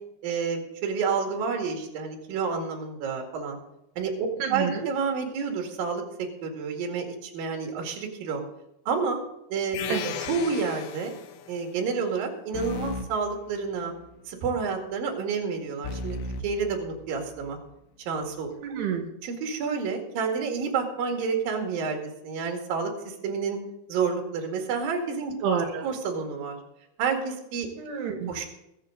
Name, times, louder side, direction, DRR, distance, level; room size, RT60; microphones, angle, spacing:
voice 1, 0.2-3.6 4.0-4.1 4.5-8.4 8.9-9.2 9.5-11.1 11.5-13.9 14.3-16.2 16.4-17.6 18.0-18.5 19.2-23.6 23.9-25.4 25.8-26.6 27.0-27.7 28.3-28.5, right 5 dB, 60° right, 2 dB, 3.7 m, -29 dB
voice 2, 4.4-4.9 9.9-10.1 18.6-19.1 25.4-25.9 27.8-28.3, right 7 dB, 80° right, 3 dB, 3.6 m, -28 dB
sound 1, 9.7-11.6, left 10 dB, 75° left, 2.7 m, -36 dB
sound 2, 12.5-14.2 15.8-17.6, left 2 dB, 90° left, 3.2 m, -36 dB
22.0 x 8.4 x 3.9 m, 0.87 s
omnidirectional pair, 4.7 m